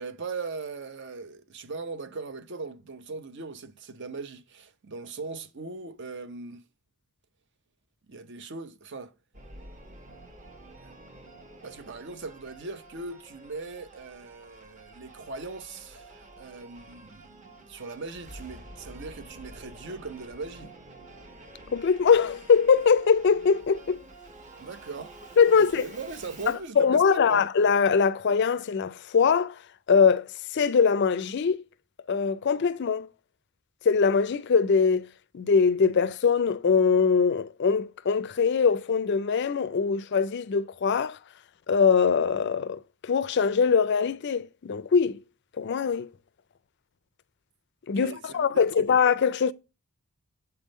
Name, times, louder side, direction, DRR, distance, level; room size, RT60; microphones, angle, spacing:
voice 1, 0.0-6.6 8.1-9.1 10.8-11.0 11.6-20.7 24.6-25.2 25.5-27.5 47.9-49.0, right 3 dB, 55° right, 0.7 m, -39 dB
Singing / Musical instrument, 9.3-26.7, right 2 dB, 35° right, 1.2 m, -49 dB
voice 2, 21.7-24.0 25.4-25.8 26.8-29.6 29.9-31.6 32.1-33.1 33.8-35.1 35.3-41.2 41.7-45.2 45.6-46.1 47.9-49.5, left 6 dB, 50° left, 0.4 m, -22 dB
7.9 x 3.6 x 5.1 m
head